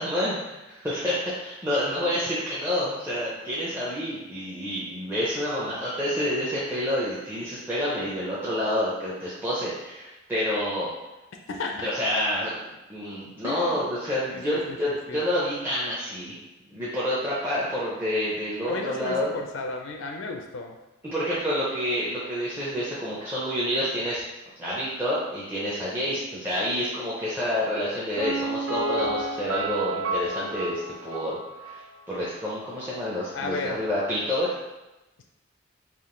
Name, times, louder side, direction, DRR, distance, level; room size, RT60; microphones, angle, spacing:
voice 1, 0.0-10.9 11.8-12.6 12.9-16.4 16.7-19.3 21.1-24.2 24.6-31.8 32.1-34.6, equal, 10° right, -8 dB, 0.5 m, -28 dB
voice 2, 13.4-13.8 14.3-14.6 15.1-15.2 18.7-20.8 33.3-33.8, left 3 dB, 70° left, 3 dB, 0.4 m, -33 dB
Piano, 28.2-31.9 32.2-32.3, right 2 dB, 85° right, 0.7 m, -31 dB
3.6 x 2.4 x 3.7 m, 1.0 s
head